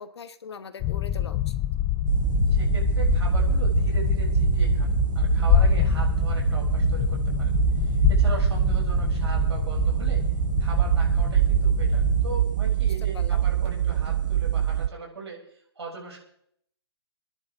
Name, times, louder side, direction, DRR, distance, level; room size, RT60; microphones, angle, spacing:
voice 1, 0.0-1.5 12.8-13.5, left 6 dB, 75° left, 10 dB, 1.3 m, -41 dB
sound 1, 0.8-12.3, left 12 dB, 15° left, 0.5 m, -26 dB
sound 2, 2.1-14.9, right 11 dB, 50° right, 0.6 m, -24 dB
voice 2, 2.5-7.5 7.8-10.2 10.6-16.2, right 3 dB, 85° right, -2 dB, 7.1 m, -39 dB
28.0 x 10.5 x 3.7 m, 0.69 s
hypercardioid pair, 160°, 14 cm